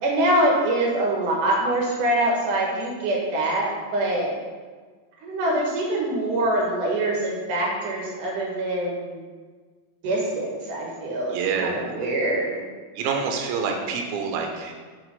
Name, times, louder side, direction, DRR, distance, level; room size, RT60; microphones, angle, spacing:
voice 1, 0.0-4.3 5.2-9.2 10.0-12.6, right 1 dB, 65° right, -2 dB, 2.7 m, -24 dB
voice 2, 11.3-11.9 13.0-14.7, right 5 dB, 80° right, 2 dB, 2.7 m, -27 dB
6.0 x 5.9 x 5.3 m, 1.4 s
omnidirectional pair, 4.4 m